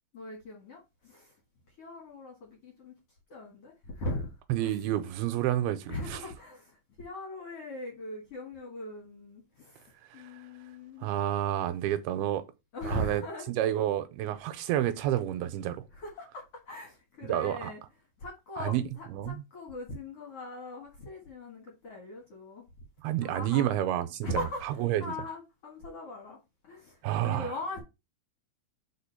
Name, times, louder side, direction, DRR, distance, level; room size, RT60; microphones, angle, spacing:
voice 1, 0.1-1.3 1.8-2.9 3.3-4.3 4.6-4.7 5.9-11.1 12.7-13.8 15.9-17.8 18.2-22.7 23.2-23.7 24.2-26.4 26.6-27.8, left 1 dB, 55° left, 1.8 m, -40 dB
voice 2, 4.5-6.2 10.1-10.4 11.0-12.4 12.8-13.2 13.6-15.9 17.3-17.7 18.6-18.8 19.1-19.4 23.0-25.0 27.0-27.5, right 12 dB, 85° right, 2.5 m, -29 dB
5.1 x 4.3 x 5.6 m
omnidirectional pair, 4.7 m